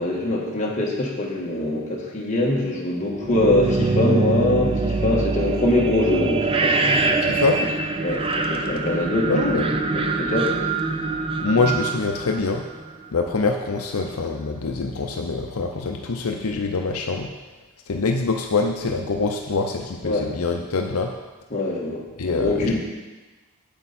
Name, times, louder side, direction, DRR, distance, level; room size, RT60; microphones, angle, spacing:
voice 1, 0.0-7.4 8.0-10.5 20.0-20.3 21.5-22.8, left 1 dB, 35° left, -3 dB, 1.6 m, -23 dB
sound 1, 3.1-13.0, right 3 dB, 25° right, 0.5 m, -24 dB
voice 2, 7.2-7.6 9.3-9.7 11.4-12.6 13.1-17.3 17.9-21.1 22.2-22.8, left 3 dB, 75° left, 3 dB, 0.6 m, -24 dB
8.7 x 8.0 x 4.2 m, 1.2 s
head